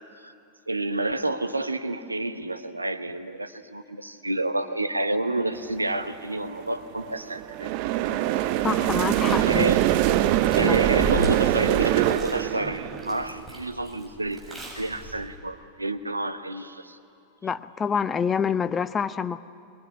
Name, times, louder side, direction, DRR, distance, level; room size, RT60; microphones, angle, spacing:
voice 1, 0.7-7.7 9.5-9.8 10.5-17.0, right 2 dB, 85° right, 10 dB, 1.1 m, -29 dB
sound 1, 5.5-5.9 6.3-13.4, right 14 dB, 45° right, 0.8 m, -23 dB
voice 2, 8.6-9.6 10.6-10.8 17.4-19.4, left 6 dB, 20° left, 14 dB, 0.6 m, -27 dB
Chewing mastication, 8.8-15.4, equal, 5° right, 7.5 m, -37 dB
22.0 x 22.0 x 9.7 m, 2.6 s
figure-of-eight pair, 90°, 0 cm